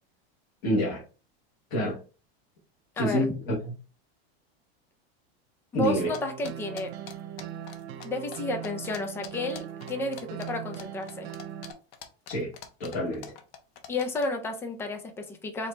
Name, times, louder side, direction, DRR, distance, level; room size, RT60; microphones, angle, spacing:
voice 1, 0.6-1.0 1.7-2.0 3.0-3.7 5.7-6.1 12.3-12.5 12.8-13.3, equal, 45° left, 1.8 m, -27 dB
voice 2, 3.0-3.3 5.7-6.9 8.0-11.3 13.9-15.7, left 2 dB, 10° left, 0.4 m, -32 dB
sound 1, 6.0-11.7, right 10 dB, 90° right, 0.6 m, -40 dB
sound 2, 6.1-8.1 8.3-8.4 8.6-14.3, left 8 dB, 65° left, 0.9 m, -44 dB
4.9 x 2.8 x 3.2 m
supercardioid pair, 165°, 31 cm